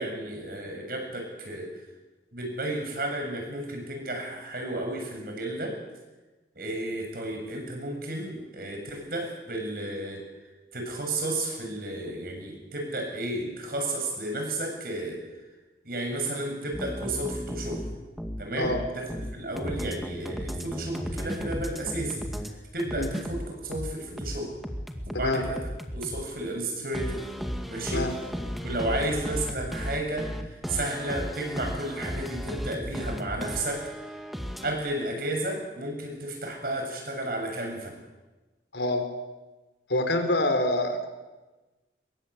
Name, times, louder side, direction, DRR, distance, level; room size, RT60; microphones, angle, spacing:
voice 1, 0.0-1.7 2.3-5.8 6.6-10.3 10.7-15.2 15.9-17.8 18.4-18.7 18.9-22.3 22.7-24.5 25.1-25.6 25.9-27.3 27.7-28.1 28.6-30.3 30.7-34.2 34.6-37.9, right 1 dB, 55° right, 3 dB, 7.4 m, -32 dB
sound 1, 16.7-22.5 22.8-26.2 26.9-34.7, equal, ahead, 2.0 m, -35 dB
voice 2, 38.7-39.0 39.9-41.1, left 1 dB, 80° left, 6 dB, 4.4 m, -26 dB
25.5 x 22.5 x 8.4 m, 1.2 s
head